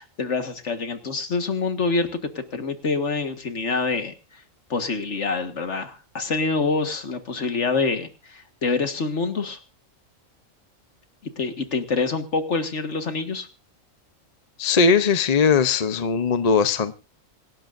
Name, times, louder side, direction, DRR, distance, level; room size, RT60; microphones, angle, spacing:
voice 1, 0.0-2.2 2.5-4.1 4.7-9.6 11.4-13.5, left 4 dB, 60° left, 7 dB, 1.9 m, -26 dB
voice 2, 14.6-17.0, left 5 dB, 35° left, 11 dB, 0.7 m, -19 dB
26.5 x 12.5 x 2.6 m, 0.32 s
omnidirectional pair, 1.4 m